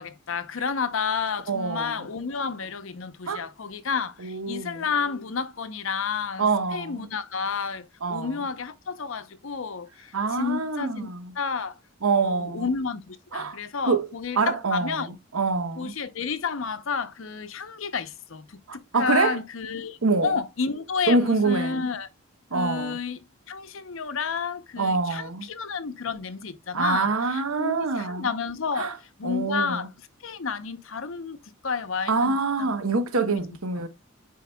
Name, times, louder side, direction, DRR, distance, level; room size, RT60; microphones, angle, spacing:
voice 1, 0.0-6.5 6.7-11.8 12.2-15.1 15.8-22.1 22.5-28.9 29.2-29.9 30.2-31.4 31.6-33.0 33.3-33.4, left 5 dB, 70° left, 0.7 m, -31 dB
voice 2, 1.5-2.0 3.3-3.5 4.2-4.8 6.4-7.1 8.0-8.4 10.1-11.3 12.0-12.7 13.3-13.6 13.8-14.1 14.4-15.1 15.3-15.9 18.7-19.4 20.0-20.4 21.1-21.8 22.5-23.0 24.8-25.5 26.7-28.3 28.8-28.9 29.2-29.9 32.1-33.9, right 3 dB, 85° right, 0.9 m, -25 dB
9.2 x 4.6 x 2.2 m
head